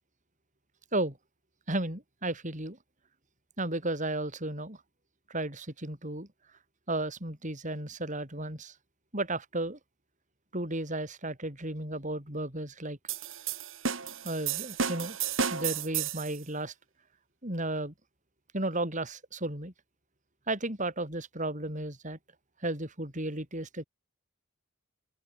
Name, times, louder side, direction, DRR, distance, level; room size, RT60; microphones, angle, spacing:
voice 1, 1.7-2.8 3.6-4.8 5.3-6.3 6.9-8.7 9.1-9.8 10.5-13.0 14.2-15.2 15.5-16.7 17.4-17.9 18.5-19.7 20.5-22.2 22.6-23.9, right 2 dB, 40° right, 6.3 m, -34 dB
sound 1, 13.1-16.4, right 7 dB, 80° right, 3.2 m, -32 dB
open air
head